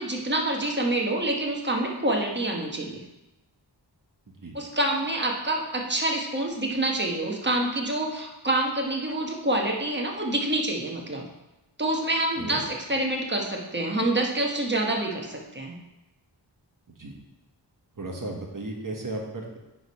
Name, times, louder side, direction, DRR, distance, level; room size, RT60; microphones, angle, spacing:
voice 1, 0.0-3.0 4.5-11.2 11.8-15.7, right 1 dB, 25° right, 0 dB, 1.1 m, -27 dB
voice 2, 17.9-19.6, right 2 dB, 45° right, 0 dB, 1.3 m, -35 dB
8.8 x 3.5 x 5.2 m, 0.99 s
wide cardioid pair, 95°, 43 cm